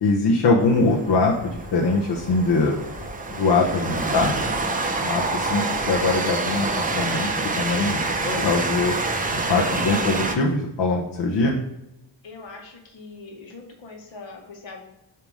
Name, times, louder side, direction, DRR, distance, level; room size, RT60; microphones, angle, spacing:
voice 1, 0.0-2.8 3.3-4.3 5.0-8.0 8.4-8.9 9.3-11.6, left 3 dB, 60° left, -1 dB, 0.9 m, -22 dB
Train, 0.6-10.3, right 3 dB, 20° right, 0.6 m, -27 dB
sound 1, 2.7-10.2, left 2 dB, 20° left, 1.0 m, -42 dB
voice 2, 12.2-14.8, left 3 dB, 75° left, 2 dB, 1.4 m, -41 dB
7.0 x 2.9 x 4.8 m, 0.87 s
wide cardioid pair, 115°, 46 cm